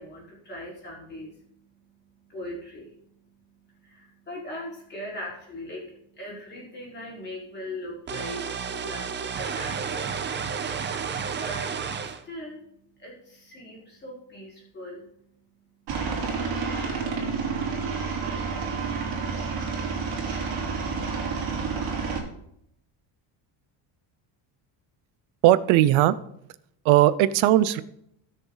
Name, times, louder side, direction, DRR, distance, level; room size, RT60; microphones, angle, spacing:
voice 1, 0.0-8.4 8.7-10.1 11.4-11.7 12.0-12.6 13.0-15.0, left 1 dB, 20° left, -4 dB, 4.8 m, -40 dB
sound 1, 8.1-12.2, right 6 dB, 25° right, 0.6 m, -31 dB
Aircraft, 15.9-22.2, right 5 dB, 50° right, 3.5 m, -29 dB
voice 2, 25.4-26.1 26.8-27.8, right 14 dB, 80° right, 16 dB, 0.8 m, -18 dB
20.0 x 6.7 x 4.0 m, 0.73 s
cardioid pair, 180°, 47 cm